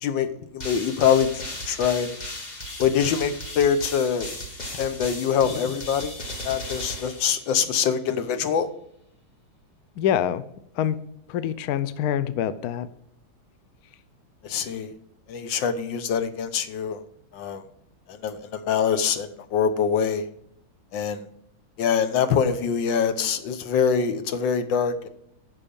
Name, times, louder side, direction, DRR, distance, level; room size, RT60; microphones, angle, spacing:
voice 1, 0.0-1.3 1.6-2.1 2.8-4.3 4.7-6.2 6.4-8.7 14.4-15.0 15.3-17.0 17.3-17.6 18.1-20.3 20.9-21.3 21.8-25.1, left 7 dB, 65° left, 10 dB, 1.4 m, -24 dB
sound 1, 0.6-7.9, left 1 dB, 25° left, 1.1 m, -36 dB
voice 2, 10.0-10.4 10.8-11.0 11.3-12.9, left 10 dB, 90° left, 14 dB, 0.8 m, -25 dB
9.8 x 6.0 x 5.3 m, 0.71 s
omnidirectional pair, 2.4 m